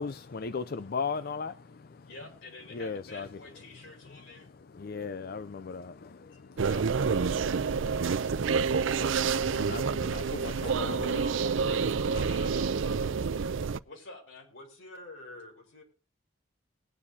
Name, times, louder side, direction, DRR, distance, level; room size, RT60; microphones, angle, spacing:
voice 1, 0.0-2.3 2.7-6.8 7.3-12.4 12.7-13.1, left 5 dB, 50° left, 0.5 m, -39 dB
voice 2, 2.1-4.5 6.5-6.9 10.0-10.3 12.1-12.8 13.9-14.5, left 2 dB, 65° left, 4.5 m, -48 dB
sound 1, 6.6-13.8, right 5 dB, 70° right, 0.5 m, -28 dB
voice 3, 8.1-8.5 8.7-9.7 10.7-12.3 14.5-15.8, left 2 dB, 80° left, 5.0 m, -48 dB
20.5 x 9.8 x 2.8 m
head